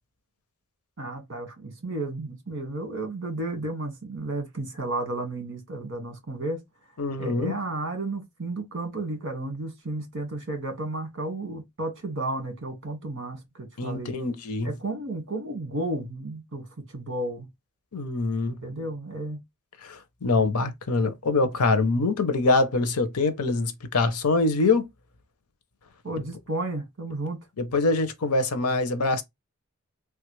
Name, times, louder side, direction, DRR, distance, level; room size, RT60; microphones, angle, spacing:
voice 1, 1.0-6.6 7.2-14.1 14.6-17.5 18.6-19.4 26.0-27.4, right 2 dB, 55° right, 1.4 m, -33 dB
voice 2, 7.0-7.5 13.8-14.7 17.9-18.5 19.8-24.8 27.6-29.2, left 3 dB, 85° left, 0.7 m, -24 dB
3.3 x 2.3 x 3.1 m
head